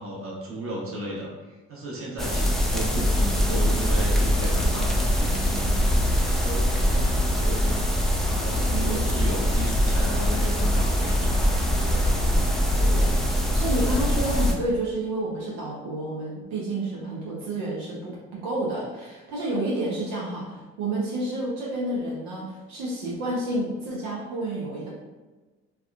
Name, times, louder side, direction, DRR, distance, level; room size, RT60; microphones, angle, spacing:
voice 1, 0.0-5.7 6.1-7.9 8.2-11.4 11.8-12.2 12.5-12.8, right 1 dB, 50° right, -3 dB, 1.1 m, -35 dB
sound 1, 2.2-14.5, equal, ahead, 0.5 m, -23 dB
voice 2, 12.8-13.2 13.5-18.2 18.4-24.9, right 1 dB, 90° right, -6 dB, 0.7 m, -30 dB
3.5 x 2.2 x 2.3 m, 1.2 s
hypercardioid pair, 60°, 29 cm